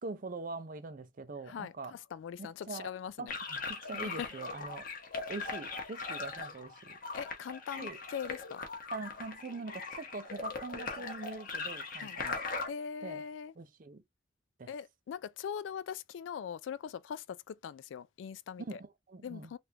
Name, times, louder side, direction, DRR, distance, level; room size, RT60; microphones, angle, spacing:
voice 1, 0.0-2.0 2.4-2.9 3.2-4.9 5.3-7.0 7.8-8.0 8.9-12.4 13.0-13.2 13.6-14.0 14.6-14.7 18.6-19.5, right 3 dB, 45° right, 0.5 m, -43 dB
voice 2, 1.5-3.3 4.0-4.3 7.1-8.6 12.0-12.2 12.7-13.5 14.7-18.8 19.2-19.6, left 7 dB, 75° left, 0.3 m, -41 dB
sound 1, 3.3-12.7, left 4 dB, 45° left, 0.9 m, -40 dB
3.4 x 2.4 x 2.8 m
head